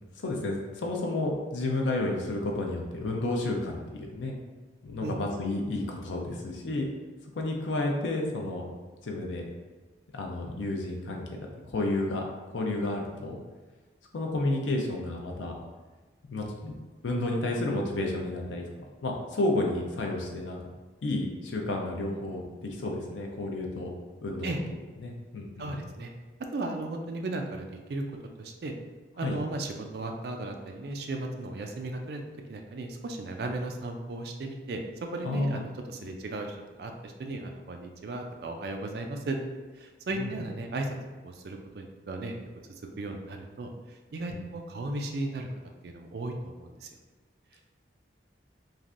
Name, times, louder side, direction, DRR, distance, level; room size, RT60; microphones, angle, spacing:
voice 1, 0.2-4.4 4.8-6.9 7.4-8.6 9.0-9.5 10.1-11.4 11.7-12.2 12.5-13.4 14.1-15.5 16.2-16.7 17.0-18.6 19.0-20.6 21.0-23.9 24.2-24.5 25.0-25.8 29.2-29.4 35.2-35.6 40.1-40.3 44.3-44.4, left 2 dB, 90° left, 0 dB, 0.5 m, -31 dB
voice 2, 25.6-26.1 26.5-28.0 28.4-28.7 29.2-32.2 32.5-34.8 35.1-39.4 39.8-40.9 41.2-42.4 43.0-45.5 45.8-46.9, right 2 dB, 60° right, 3 dB, 0.3 m, -36 dB
3.2 x 2.5 x 2.4 m, 1.3 s
head